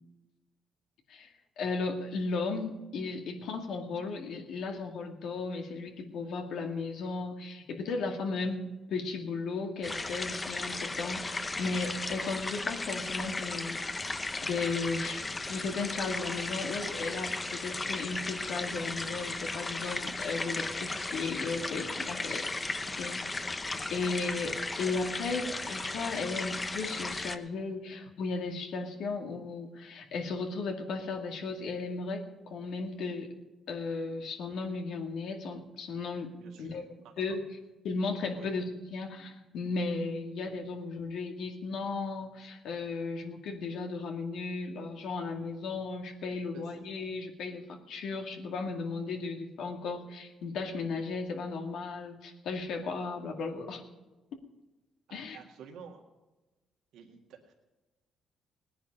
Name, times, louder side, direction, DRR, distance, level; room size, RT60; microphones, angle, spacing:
voice 1, 1.6-14.1 14.4-23.6 23.9-33.3 33.7-36.3 36.6-36.8 37.2-37.4 37.8-53.8 55.1-55.4, left 4 dB, 75° left, 3 dB, 2.2 m, -35 dB
sound 1, 9.8-27.4, left 2 dB, 25° left, 0.9 m, -36 dB
voice 2, 36.4-37.4 38.3-38.5 46.5-46.7 55.1-56.0 56.9-57.5, right 6 dB, 85° right, 0 dB, 2.0 m, -51 dB
18.5 x 10.0 x 5.5 m, 1.1 s
cardioid pair, 90°, 0 cm